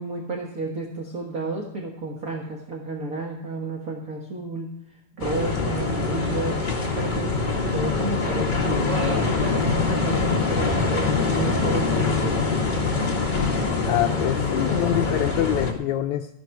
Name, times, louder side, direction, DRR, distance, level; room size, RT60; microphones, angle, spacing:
voice 1, 0.0-6.6 7.0-12.4, right 3 dB, 40° right, 0 dB, 1.4 m, -32 dB
sound 1, 5.2-15.7, left 4 dB, 25° left, 1.0 m, -24 dB
voice 2, 13.9-16.3, left 12 dB, 75° left, 6 dB, 1.8 m, -25 dB
15.0 x 11.5 x 4.6 m, 0.78 s
omnidirectional pair, 3.6 m